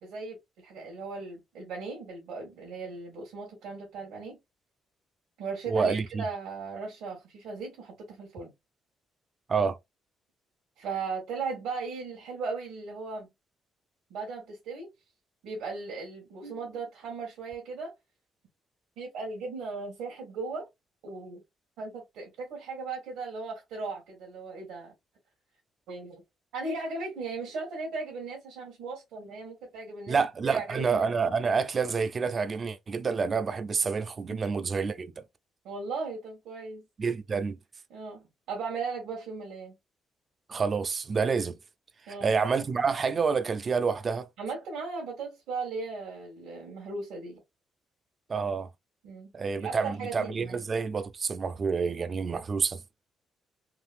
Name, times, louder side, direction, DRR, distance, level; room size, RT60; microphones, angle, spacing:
voice 1, 0.0-4.4 5.4-8.5 10.8-13.3 14.1-14.9 15.4-17.9 19.0-20.7 21.0-21.4 21.8-24.9 25.9-26.2 26.5-31.0 34.3-34.4 35.6-36.9 37.9-39.7 42.1-42.3 44.4-47.4 49.0-50.6, right 4 dB, 85° right, 1.4 m, -37 dB
voice 2, 5.7-6.2 9.5-9.8 30.1-35.2 37.0-37.6 40.5-41.6 42.2-44.3 48.3-48.7 49.3-52.8, right 5 dB, 40° right, 0.5 m, -28 dB
3.7 x 2.6 x 2.5 m
cardioid pair, 90°, 0 cm